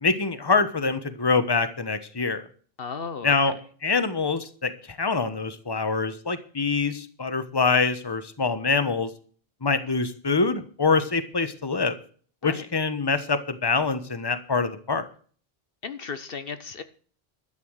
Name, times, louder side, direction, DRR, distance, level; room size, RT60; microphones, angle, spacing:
voice 1, 0.0-2.5 3.2-3.6 3.8-9.1 9.6-12.0 12.4-15.1, left 4 dB, 25° left, 11 dB, 1.2 m, -25 dB
voice 2, 2.8-3.3 12.4-12.7 15.8-16.8, left 5 dB, 65° left, 11 dB, 1.1 m, -35 dB
12.5 x 9.5 x 6.5 m, 0.44 s
omnidirectional pair, 1.0 m